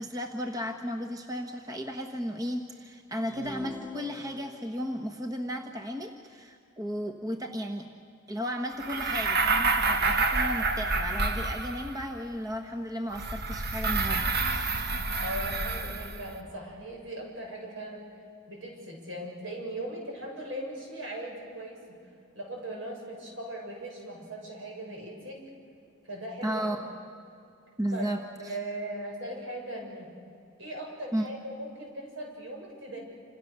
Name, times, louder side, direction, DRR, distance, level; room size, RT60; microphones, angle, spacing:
voice 1, 0.0-7.9 8.3-14.9 26.4-26.8 27.8-28.5 31.1-31.3, equal, 20° right, 4 dB, 1.2 m, -34 dB
sound 1, 3.3-4.9, left 2 dB, 10° left, 1.5 m, -44 dB
sound 2, 8.8-12.0 13.1-16.3, right 3 dB, 50° right, 1.6 m, -28 dB
voice 2, 15.2-18.0 18.5-22.0 22.3-25.4 26.0-26.8 27.9-28.1 28.4-30.1 30.6-33.0, right 1 dB, 70° right, 0 dB, 7.3 m, -39 dB
28.5 x 26.5 x 6.8 m, 2.5 s
head